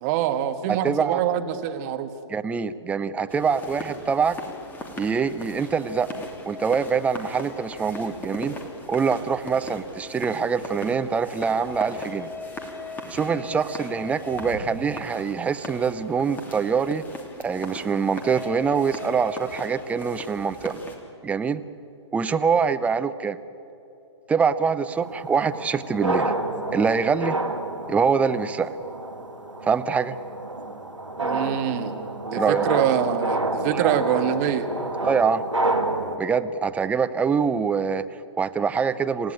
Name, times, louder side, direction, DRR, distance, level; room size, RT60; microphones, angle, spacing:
voice 1, 0.0-2.1 31.2-31.9 32.3-34.7, right 10 dB, 35° right, 8 dB, 1.6 m, -25 dB
voice 2, 0.8-1.2 2.3-4.4 5.0-8.6 8.9-12.3 13.1-17.0 17.4-20.7 21.2-21.6 22.1-23.4 24.3-26.3 26.7-27.3 27.9-28.7 29.6-30.2 32.3-32.7 33.7-34.0 35.0-35.4 36.2-39.3, right 6 dB, 10° right, 11 dB, 0.6 m, -24 dB
sound 1, 3.3-21.0, left 2 dB, 10° left, 3.0 m, -38 dB
sound 2, 24.9-36.2, right 2 dB, 85° right, 2.6 m, -29 dB
28.5 x 16.0 x 9.0 m, 3.0 s
figure-of-eight pair, 120°, 15 cm